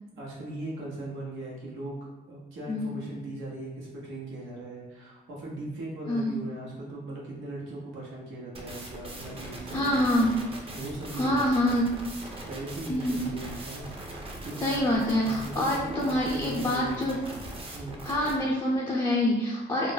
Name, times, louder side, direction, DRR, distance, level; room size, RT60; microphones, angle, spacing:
voice 1, 0.1-11.8 12.4-13.9 14.4-17.0 17.7-18.0, right 2 dB, 90° right, -4 dB, 1.0 m, -39 dB
voice 2, 2.7-3.0 6.1-6.3 9.7-10.3 11.1-11.9 12.9-13.2 14.6-17.2 18.0-19.9, left 1 dB, 20° left, -4 dB, 0.5 m, -26 dB
sound 1, 8.5-18.3, right 1 dB, 30° right, 0.6 m, -40 dB
2.4 x 2.0 x 3.9 m, 1.0 s
cardioid pair, 90°, 20 cm